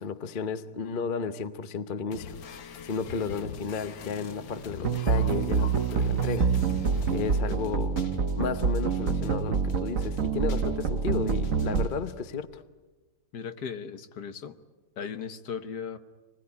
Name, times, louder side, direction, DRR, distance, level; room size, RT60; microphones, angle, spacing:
voice 1, 0.0-2.3 2.8-6.5 7.1-8.0 8.4-12.6, left 5 dB, 40° left, 11 dB, 0.8 m, -33 dB
sound 1, 2.1-12.1, left 6 dB, 85° left, 1.9 m, -43 dB
sound 2, 4.8-11.9, right 6 dB, 50° right, 1.3 m, -26 dB
voice 2, 13.3-14.5 15.0-16.0, left 7 dB, 60° left, 10 dB, 1.6 m, -37 dB
27.0 x 20.5 x 9.8 m, 1.2 s
omnidirectional pair, 2.0 m